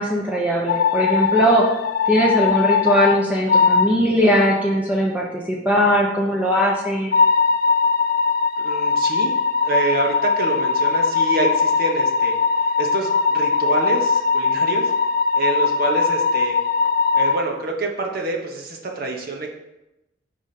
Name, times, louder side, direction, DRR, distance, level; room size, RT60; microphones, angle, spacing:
voice 1, 0.0-1.6 2.1-7.2, equal, 10° right, -4 dB, 0.8 m, -19 dB
sound 1, 0.7-3.2 3.5-3.9 7.1-17.4, left 5 dB, 50° left, 0.3 m, -20 dB
voice 2, 8.6-9.3 9.6-12.3 12.6-14.9 15.4-16.6 17.1-19.5, right 3 dB, 50° right, 1 dB, 1.0 m, -26 dB
4.9 x 4.0 x 5.8 m, 0.94 s
head